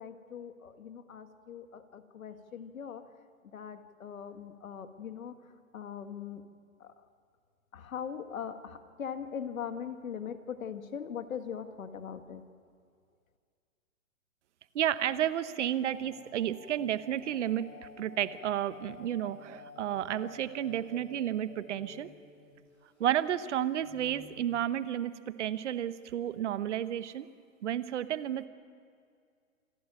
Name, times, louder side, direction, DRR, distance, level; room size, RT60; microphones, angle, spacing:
voice 1, 0.0-3.0 3.5-5.3 5.7-6.4 6.8-6.9 7.7-12.4, left 7 dB, 75° left, 9 dB, 1.8 m, -41 dB
voice 2, 14.7-17.7 18.0-22.1 23.0-27.3 27.6-28.5, right 11 dB, 55° right, 14 dB, 1.0 m, -32 dB
sound 1, 15.9-22.8 23.1-23.2 23.8-24.6, left 4 dB, 25° left, 4.4 m, -51 dB
27.5 x 12.0 x 9.0 m, 2.2 s
hypercardioid pair, 145°, 41 cm